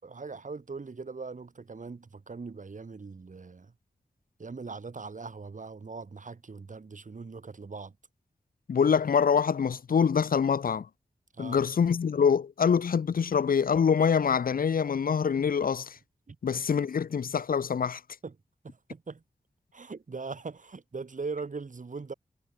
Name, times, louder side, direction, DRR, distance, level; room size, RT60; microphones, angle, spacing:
voice 1, 0.0-3.7 4.4-7.9 11.3-11.6 16.3-16.4 18.2-18.3 18.6-19.2 19.7-22.1, right 4 dB, 60° right, 6.7 m, -40 dB
voice 2, 8.7-10.9 11.4-16.0 16.4-18.0, left 6 dB, 85° left, 1.3 m, -25 dB
cardioid pair, 45°, 14 cm